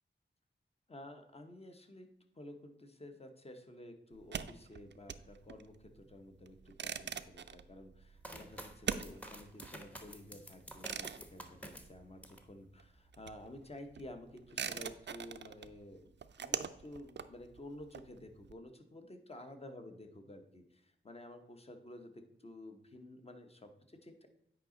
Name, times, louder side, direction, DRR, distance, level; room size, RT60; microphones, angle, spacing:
voice 1, 0.9-2.1 2.3-16.1 16.4-24.3, left 1 dB, 30° left, 6 dB, 0.9 m, -52 dB
sound 1, 4.1-12.5 12.7-18.5, right 7 dB, 65° right, 0.4 m, -44 dB
sound 2, 8.2-12.5 13.0-13.6, right 1 dB, 5° left, 0.9 m, -50 dB
9.0 x 5.1 x 3.8 m, 0.82 s
wide cardioid pair, 95°, 20 cm